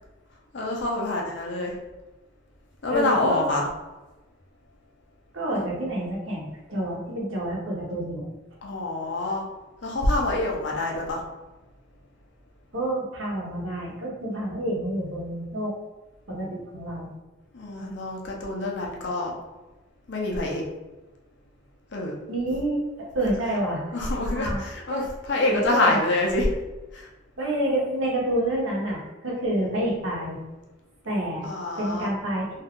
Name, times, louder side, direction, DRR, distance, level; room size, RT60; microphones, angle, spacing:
voice 1, 0.5-1.7 2.8-3.7 5.5-5.6 8.6-9.4 9.8-11.2 17.5-19.3 20.1-20.6 21.9-22.2 23.9-25.0 25.3-26.5 26.9-27.1 31.4-32.1, left 2 dB, 60° left, -1 dB, 0.6 m, -26 dB
voice 2, 2.9-3.4 5.3-8.3 12.7-15.7 16.3-17.1 22.3-22.8 23.1-23.8 24.3-24.6 24.9-25.1 25.4-26.0 27.4-30.4 31.0-31.4 31.8-32.6, right 1 dB, 85° right, -4 dB, 1.0 m, -28 dB
2.7 x 2.3 x 3.6 m, 1.1 s
head